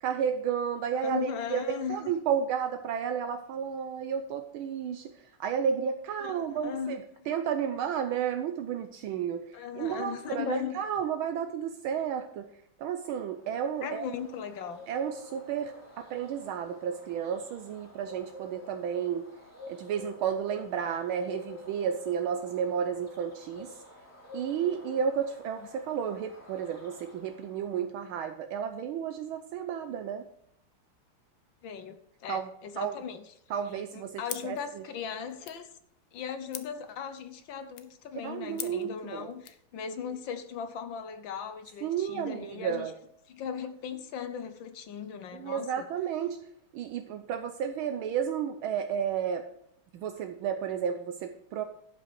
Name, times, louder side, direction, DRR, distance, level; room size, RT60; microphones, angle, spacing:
voice 1, 0.0-12.5 12.8-14.1 14.9-19.3 19.7-23.7 24.3-30.2 32.3-32.5 32.8-33.0 33.5-34.8 38.2-39.3 41.8-42.9 45.3-46.4 46.7-49.5 49.9-51.7, right 8 dB, 75° right, 7 dB, 1.4 m, -32 dB
voice 2, 0.9-2.1 6.2-7.0 7.3-7.4 9.5-10.8 13.8-14.8 31.6-33.3 33.9-35.7 36.1-42.9 43.3-45.9, left 7 dB, 65° left, 10 dB, 1.4 m, -38 dB
Bird, 13.1-27.8, left 2 dB, 5° left, 2.2 m, -49 dB
sound 1, 34.2-39.7, left 12 dB, 85° left, 1.7 m, -46 dB
11.5 x 5.6 x 5.9 m, 0.74 s
omnidirectional pair, 2.4 m